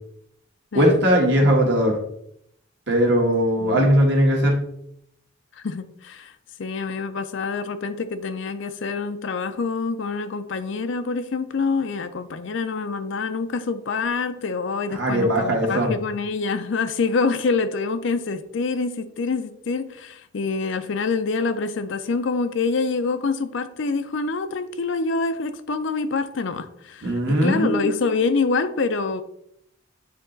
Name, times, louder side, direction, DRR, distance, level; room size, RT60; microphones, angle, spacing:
voice 1, 0.7-2.0 2.9-4.7 14.9-15.9 27.0-27.9, equal, 55° right, -1 dB, 1.5 m, -19 dB
voice 2, 5.6-6.3 6.6-29.2, left 4 dB, 60° left, 11 dB, 0.5 m, -26 dB
8.7 x 2.9 x 3.9 m, 0.73 s
head